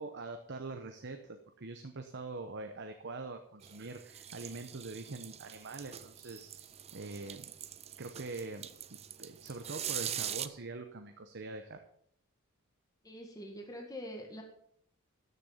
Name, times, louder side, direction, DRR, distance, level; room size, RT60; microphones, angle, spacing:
voice 1, 0.0-7.4 8.0-11.8, right 3 dB, 50° right, 6 dB, 0.9 m, -44 dB
sound 1, 3.6-10.5, right 10 dB, 30° right, 0.5 m, -43 dB
voice 2, 13.0-14.4, equal, 15° left, 2 dB, 1.8 m, -44 dB
13.5 x 6.8 x 5.7 m, 0.68 s
head